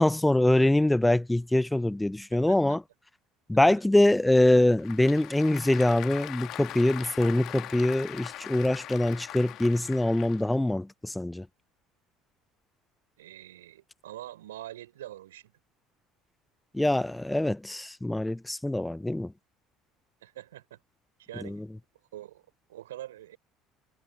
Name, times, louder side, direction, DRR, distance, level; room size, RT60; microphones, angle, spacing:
voice 1, 0.0-2.8 3.5-11.5 16.7-19.3 21.4-21.7, left 1 dB, 5° left, 0.4 m, -24 dB
voice 2, 2.3-2.8 13.2-15.5 17.8-17.9 20.2-20.8 21.2-21.6 22.1-23.4, right 13 dB, 75° right, 3.8 m, -44 dB
Applause / Crowd, 4.4-10.6, left 14 dB, 55° left, 1.8 m, -41 dB
figure-of-eight pair, 60°, 0 cm